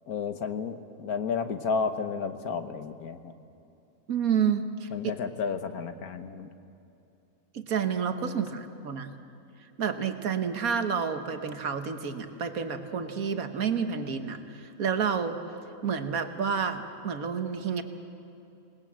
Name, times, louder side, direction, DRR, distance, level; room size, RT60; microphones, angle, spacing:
voice 1, 0.1-3.3 4.9-6.5, left 5 dB, 85° left, 9 dB, 1.6 m, -32 dB
voice 2, 4.1-4.9 7.5-9.1 9.8-15.4 15.8-17.8, right 6 dB, 75° right, 8 dB, 1.7 m, -29 dB
27.0 x 19.5 x 7.5 m, 2.7 s
omnidirectional pair, 1.5 m